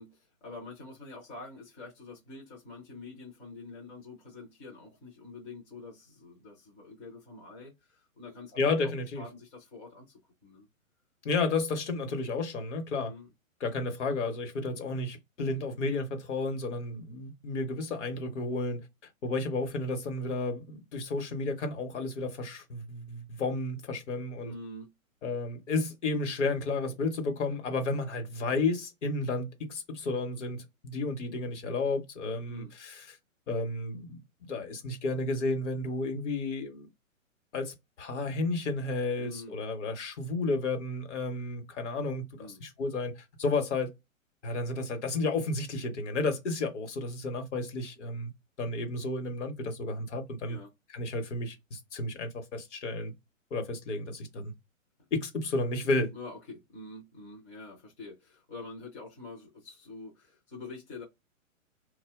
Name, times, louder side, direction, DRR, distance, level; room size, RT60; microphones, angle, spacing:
voice 1, 0.0-10.7 13.1-13.3 24.4-24.9 32.5-32.7 39.2-39.6 42.4-42.6 50.5-50.7 56.1-61.0, left 3 dB, 15° left, 0.4 m, -46 dB
voice 2, 8.6-9.2 11.2-13.1 13.6-18.8 19.2-24.5 25.2-33.0 33.5-36.9 37.5-43.9 44.4-48.3 48.6-50.6 50.9-53.1 53.5-54.5 55.1-56.1, left 3 dB, 60° left, 0.9 m, -32 dB
2.7 x 2.1 x 3.4 m
hypercardioid pair, 125°, 41 cm